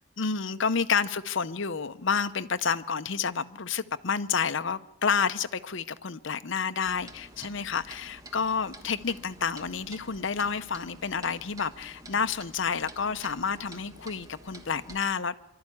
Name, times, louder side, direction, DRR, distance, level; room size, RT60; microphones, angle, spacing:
voice 1, 0.2-15.3, left 6 dB, 60° left, 11 dB, 0.8 m, -29 dB
Clock, 6.9-15.0, right 1 dB, 15° right, 1.5 m, -49 dB
25.0 x 13.0 x 9.8 m, 0.93 s
head